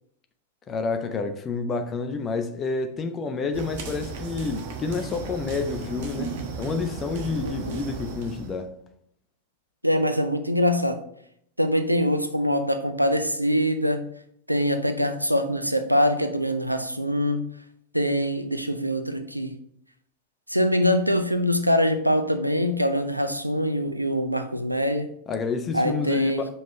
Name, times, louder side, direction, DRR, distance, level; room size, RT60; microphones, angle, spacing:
voice 1, 0.7-8.7 25.3-26.3, left 4 dB, 25° left, 0.8 m, -29 dB
sound 1, 3.5-8.6, right 4 dB, 50° right, 1.2 m, -35 dB
voice 2, 7.4-7.8 9.8-11.0 11.6-14.1 14.5-17.5 17.9-19.5 20.5-25.1 25.7-26.4, equal, 90° right, 0.6 m, -24 dB
5.6 x 5.3 x 4.4 m
figure-of-eight pair, 90°, 0 cm